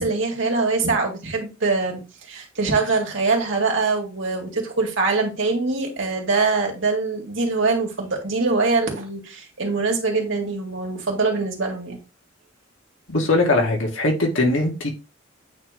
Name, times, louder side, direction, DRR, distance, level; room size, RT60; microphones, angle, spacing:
voice 1, 0.0-2.0 2.3-12.0, right 3 dB, 70° right, 2.2 m, -23 dB
voice 2, 13.1-14.9, left 2 dB, 75° left, 2.0 m, -20 dB
8.5 x 3.1 x 3.8 m
head